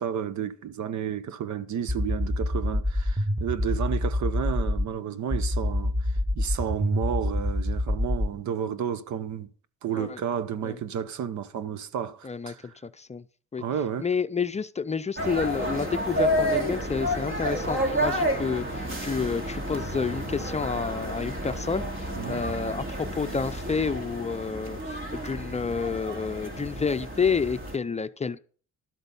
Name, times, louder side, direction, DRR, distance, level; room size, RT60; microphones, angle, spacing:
voice 1, 0.0-9.5 9.8-12.7 13.6-14.1 22.1-22.4, right 8 dB, 70° right, 1.0 m, -32 dB
sound 1, 1.9-4.9 5.3-8.3, left 1 dB, 10° right, 0.9 m, -26 dB
voice 2, 12.2-12.5 12.8-13.2 13.5-13.6 14.0-28.4, left 5 dB, 20° left, 0.6 m, -29 dB
sound 2, 15.2-27.8, equal, 40° right, 2.6 m, -30 dB
12.0 x 7.9 x 5.5 m
cardioid pair, 90°, 30 cm